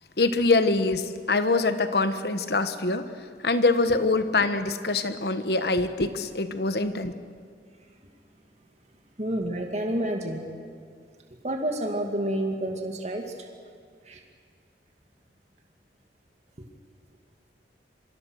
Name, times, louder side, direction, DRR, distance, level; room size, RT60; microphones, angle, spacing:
voice 1, 0.2-3.1 3.4-7.1, left 3 dB, 65° left, 10 dB, 1.3 m, -24 dB
voice 2, 9.2-10.4 11.4-13.5 14.1-14.2, right 1 dB, 40° right, 2 dB, 2.5 m, -29 dB
26.5 x 24.5 x 6.5 m, 2.1 s
head